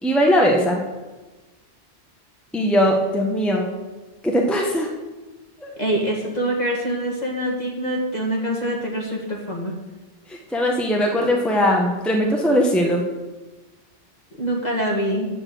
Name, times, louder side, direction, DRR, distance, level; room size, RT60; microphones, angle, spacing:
voice 1, 0.0-0.8 2.5-3.7 4.2-4.9 5.6-5.7 10.3-13.0, equal, ahead, 0 dB, 1.1 m, -20 dB
voice 2, 5.8-9.7 14.4-15.3, right 1 dB, 40° left, -2 dB, 2.2 m, -25 dB
8.8 x 6.7 x 7.7 m, 1.2 s
omnidirectional pair, 1.1 m